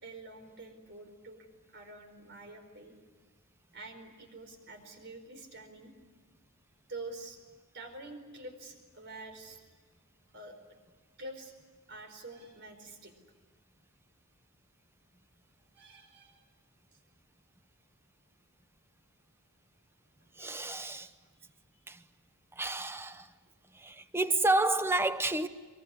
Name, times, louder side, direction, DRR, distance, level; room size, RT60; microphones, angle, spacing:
voice 1, 0.0-2.9 3.7-5.9 6.9-7.4 7.7-9.6 10.3-10.8 11.2-11.5 11.9-13.1 15.7-16.4 20.2-20.3 23.4-23.5, right 2 dB, 50° right, 4.8 m, -47 dB
voice 2, 20.4-21.1 21.9-22.0 22.5-23.3 23.7-25.5, right 2 dB, 10° right, 0.9 m, -30 dB
24.0 x 23.5 x 9.8 m
head